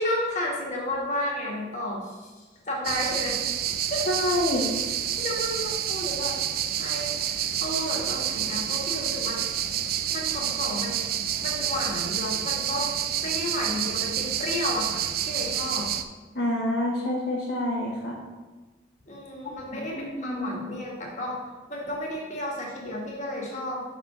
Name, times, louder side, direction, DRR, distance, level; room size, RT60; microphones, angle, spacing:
voice 1, 0.0-3.4 3.9-4.1 4.5-4.7 5.2-6.4 6.8-9.4 10.1-11.0 11.4-12.9 13.2-15.9 19.1-21.4 21.7-23.8, left 1 dB, 40° left, -3 dB, 1.4 m, -32 dB
sound 1, 2.8-16.0, right 10 dB, 55° right, 0.3 m, -29 dB
voice 2, 4.1-4.7 16.3-18.2 19.4-19.5 19.9-20.5, left 1 dB, 60° left, -4 dB, 1.0 m, -27 dB
5.8 x 4.1 x 4.8 m, 1.2 s
head